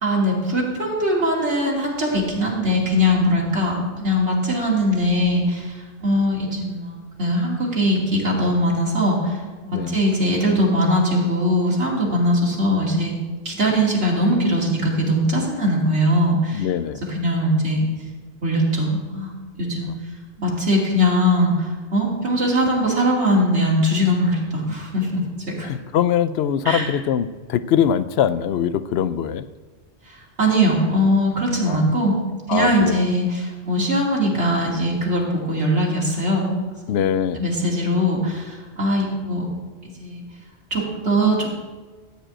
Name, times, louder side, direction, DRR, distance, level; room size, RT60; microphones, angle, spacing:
voice 1, 0.0-9.4 9.6-13.1 13.4-16.7 17.0-17.9 18.4-19.9 20.4-25.7 26.6-26.9 30.1-32.2 32.5-36.5 36.9-37.0 37.4-39.5 40.0-40.2 40.7-41.5, equal, 75° right, -3 dB, 2.9 m, -21 dB
voice 2, 16.5-17.0 25.6-29.4 31.7-31.9 32.5-33.0 36.9-37.4, left 9 dB, 70° left, 14 dB, 0.8 m, -22 dB
14.0 x 5.1 x 8.9 m, 1.4 s
omnidirectional pair, 1.2 m